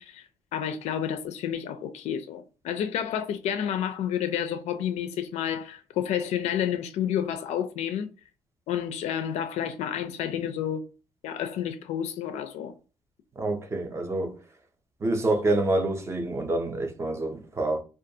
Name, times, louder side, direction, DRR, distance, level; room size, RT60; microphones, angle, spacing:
voice 1, 0.0-8.1 8.7-10.8 11.2-12.7, left 9 dB, 70° left, 0.4 m, -30 dB
voice 2, 13.4-14.4 15.0-17.8, right 2 dB, 25° right, 0.5 m, -27 dB
2.4 x 2.3 x 2.7 m
cardioid pair, 135°, 12 cm